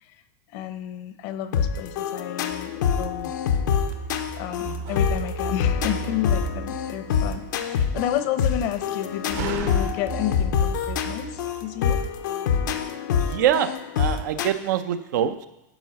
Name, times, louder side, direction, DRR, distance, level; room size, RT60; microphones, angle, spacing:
voice 1, 0.5-3.3 4.4-12.0, left 11 dB, 55° left, 10 dB, 0.8 m, -31 dB
sound 1, 1.5-14.5, left 7 dB, 80° left, 0.9 m, -26 dB
sound 2, 2.5-7.5 9.3-12.3, right 5 dB, 20° right, 0.4 m, -37 dB
Slam, 4.0-11.5, right 8 dB, 60° right, 1.1 m, -41 dB
voice 2, 13.2-13.7 14.0-15.5, right 10 dB, 75° right, 10 dB, 0.7 m, -24 dB
11.0 x 4.7 x 5.9 m, 0.92 s
supercardioid pair, 135°, 10 cm